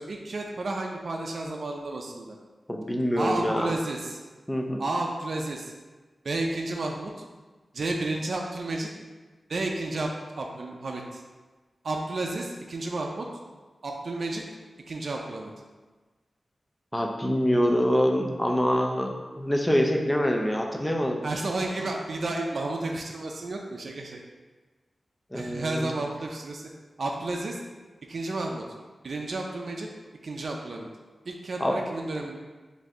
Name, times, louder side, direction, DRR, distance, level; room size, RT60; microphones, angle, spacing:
voice 1, 0.0-2.4 3.2-4.2 4.8-5.7 6.2-7.2 7.7-8.9 9.5-11.2 11.8-13.3 13.8-14.5 14.9-15.5 21.2-24.2 25.3-26.7 27.0-27.6 28.1-28.6 29.0-29.9 30.2-30.9 31.3-32.4, right 2 dB, 65° right, 0 dB, 0.4 m, -32 dB
voice 2, 2.7-3.7 4.5-4.8 16.9-21.2 25.3-25.9 31.6-31.8, equal, 10° left, 2 dB, 0.5 m, -25 dB
5.1 x 2.6 x 3.7 m, 1.3 s
wide cardioid pair, 105°, 0 cm